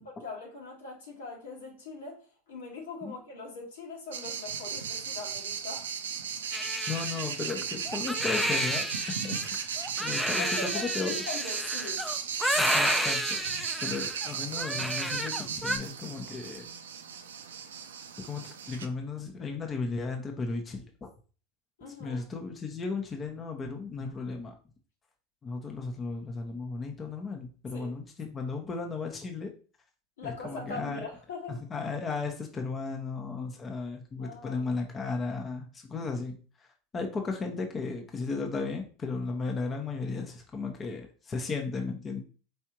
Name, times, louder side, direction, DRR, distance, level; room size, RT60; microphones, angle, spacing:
voice 1, 0.0-5.9 10.2-12.1 21.8-22.2 27.7-27.9 30.2-31.6 34.2-34.6, left 3 dB, 80° left, 1.7 m, -41 dB
sound 1, 4.1-18.9, right 7 dB, 85° right, 0.5 m, -35 dB
Crying sobbing, 6.5-15.8, equal, ahead, 0.6 m, -31 dB
voice 2, 6.9-11.2 12.6-13.4 13.8-16.7 18.3-21.1 22.0-24.5 25.4-29.5 30.2-31.1 31.5-36.7 36.9-42.2, left 4 dB, 25° left, 0.9 m, -35 dB
4.7 x 3.3 x 2.9 m
hypercardioid pair, 90°, 0 cm